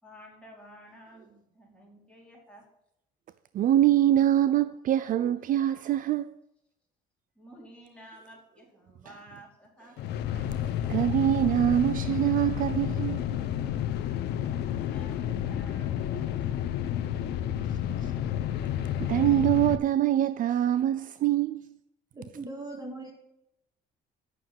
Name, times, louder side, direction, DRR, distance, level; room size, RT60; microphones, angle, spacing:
voice 1, 0.0-2.6 7.4-10.0 14.4-16.6, equal, 5° left, 4.7 m, -52 dB
voice 2, 3.5-6.4 9.1-9.2 10.3-10.5 10.9-13.3 18.0-18.1 19.0-21.7, right 12 dB, 55° right, 0.5 m, -24 dB
sound 1, 10.0-19.8, left 10 dB, 80° left, 0.8 m, -30 dB
voice 3, 22.1-23.1, right 2 dB, 20° right, 2.3 m, -39 dB
9.5 x 6.0 x 7.9 m
cardioid pair, 110°, 17 cm